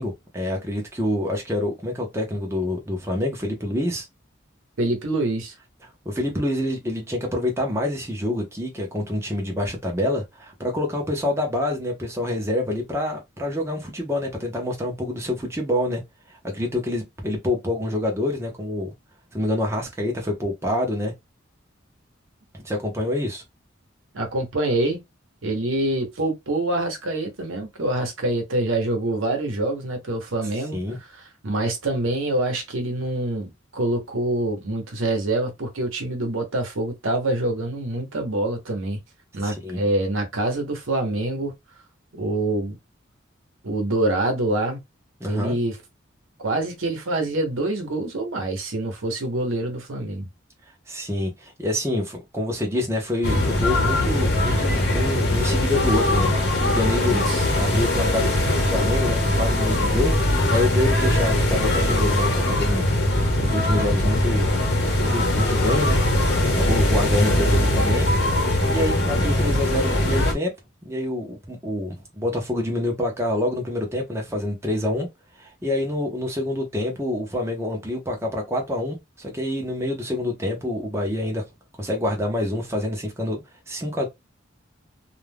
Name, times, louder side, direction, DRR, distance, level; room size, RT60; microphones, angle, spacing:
voice 1, 0.0-4.1 6.1-16.0 16.3-18.9 19.3-21.1 22.5-23.4 30.7-31.0 39.4-39.8 45.2-45.6 50.9-56.3 56.7-57.2 57.6-62.9 63.4-64.5 65.0-66.0 66.6-68.1 68.7-70.5 70.8-75.1 75.4-81.4 81.8-83.4 83.7-84.1, left 1 dB, 15° right, 0.7 m, -26 dB
voice 2, 4.8-5.5 24.1-25.0 25.4-30.8 31.1-39.0 39.3-41.5 42.2-42.8 43.6-44.8 45.3-45.8 46.4-50.3 54.7-54.8 57.1-57.4, right 2 dB, 85° right, 0.9 m, -25 dB
sound 1, 53.2-70.3, left 1 dB, 55° left, 1.0 m, -21 dB
2.4 x 2.2 x 3.3 m
head